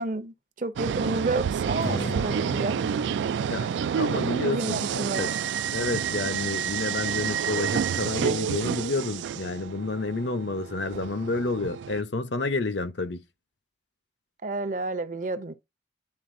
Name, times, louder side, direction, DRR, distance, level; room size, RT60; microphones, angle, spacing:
voice 1, 0.0-2.8 4.4-5.3 14.4-15.5, right 2 dB, 45° right, 0.6 m, -30 dB
sound 1, 0.8-12.0, right 7 dB, 85° right, 0.3 m, -29 dB
Strum, 1.8-7.0, left 1 dB, 15° left, 0.4 m, -41 dB
voice 2, 4.0-5.3 5.7-13.2, left 3 dB, 80° left, 0.8 m, -30 dB
10.5 x 4.0 x 2.6 m
head